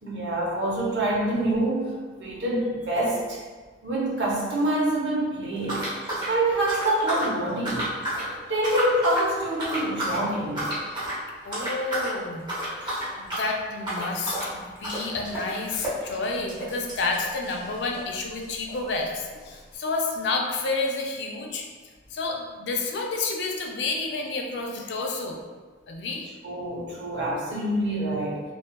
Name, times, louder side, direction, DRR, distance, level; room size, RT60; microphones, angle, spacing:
voice 1, 0.0-3.4 3.8-5.9 6.3-10.7 26.4-28.4, right 1 dB, 75° right, -4 dB, 0.7 m, -26 dB
sound 1, 5.6-7.3 7.6-8.3 8.6-9.3 9.6-10.2 10.5-11.2 11.5-12.1 12.4-18.1 18.4-18.5 18.7-18.8 19.4-19.5, right 1 dB, 25° right, 0.7 m, -31 dB
voice 2, 11.4-12.5 12.8-21.7 22.1-25.4 25.9-26.3, left 3 dB, 70° left, 1 dB, 0.4 m, -30 dB
2.7 x 2.3 x 2.2 m, 1.4 s
head